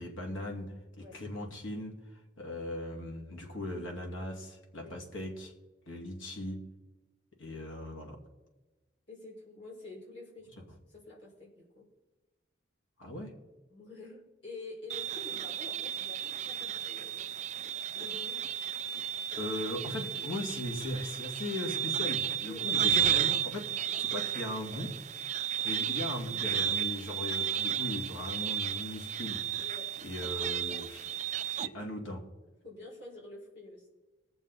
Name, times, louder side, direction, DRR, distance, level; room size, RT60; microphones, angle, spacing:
voice 1, 0.0-5.5 5.9-6.6 7.4-8.2 13.0-13.3 19.4-23.7 24.0-24.9 25.6-29.4 30.0-31.1 31.6-32.2, left 1 dB, 85° left, 2 dB, 2.4 m, -38 dB
voice 2, 9.1-11.9 13.7-17.3 17.9-18.4 22.4-22.7 25.8-25.9 29.6-29.9 30.5-30.8 32.6-33.9, left 2 dB, 65° left, -4 dB, 4.9 m, -48 dB
sound 1, 14.9-31.7, right 10 dB, 35° right, 0.3 m, -33 dB
21.0 x 7.1 x 4.2 m, 1.2 s
head